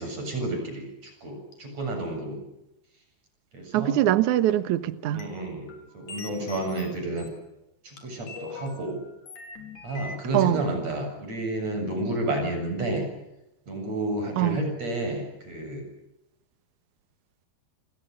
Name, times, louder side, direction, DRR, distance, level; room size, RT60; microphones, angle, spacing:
voice 1, 0.0-2.4 3.5-4.0 5.1-7.3 7.8-9.0 9.8-13.0 13.7-15.9, right 2 dB, 40° right, 5 dB, 9.1 m, -31 dB
sound 1, 1.5-1.6 4.5-5.3 5.7-7.3 8.0-10.2, left 4 dB, 50° left, 5.8 m, -41 dB
voice 2, 3.7-5.2 10.3-10.6 14.4-14.6, right 13 dB, 65° right, 13 dB, 2.1 m, -23 dB
28.5 x 28.0 x 6.7 m, 0.90 s
omnidirectional pair, 4.8 m